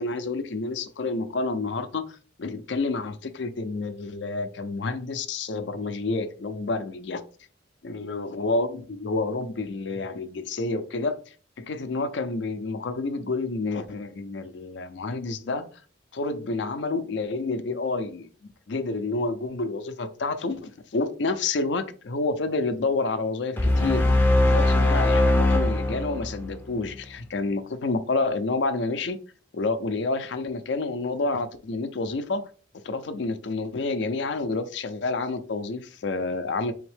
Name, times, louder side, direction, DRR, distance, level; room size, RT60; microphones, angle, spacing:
voice 1, 0.0-7.2 7.8-15.7 16.1-18.3 18.7-24.1 24.4-29.2 29.5-32.5 32.7-36.7, left 3 dB, 65° left, 0.5 m, -29 dB
sound 1, 23.6-26.9, left 1 dB, 10° left, 0.5 m, -21 dB
3.5 x 3.5 x 3.4 m
head